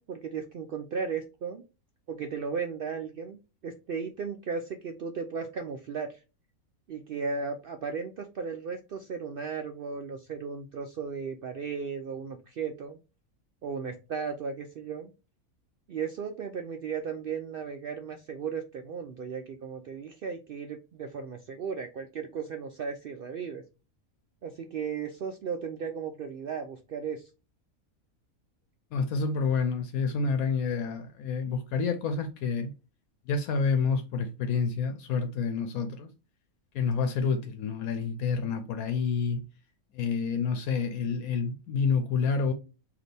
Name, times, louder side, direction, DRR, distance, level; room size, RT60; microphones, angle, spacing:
voice 1, 0.1-1.6 2.1-6.2 6.9-13.0 13.6-15.1 15.9-23.6 24.4-27.3, right 6 dB, 80° right, 0.5 m, -35 dB
voice 2, 28.9-32.7 33.3-36.1 36.7-39.4 39.9-42.5, left 5 dB, 80° left, 1.1 m, -28 dB
4.1 x 2.7 x 3.3 m
omnidirectional pair, 1.5 m